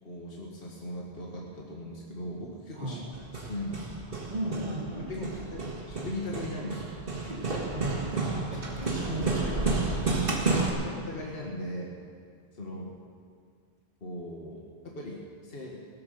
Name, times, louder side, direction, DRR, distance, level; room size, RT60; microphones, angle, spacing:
voice 1, 0.0-3.0 3.3-4.0 5.1-6.9 8.9-10.3 10.8-12.0 12.5-13.0 14.0-15.9, left 1 dB, 60° left, -2 dB, 1.9 m, -39 dB
voice 2, 2.7-3.1 4.3-5.6 7.2-9.4 10.4-10.9, right 2 dB, 40° right, -2 dB, 2.6 m, -37 dB
Hammer, 3.1-10.7, right 3 dB, 60° right, 2.2 m, -31 dB
17.5 x 11.5 x 6.7 m, 2.2 s
omnidirectional pair, 1.1 m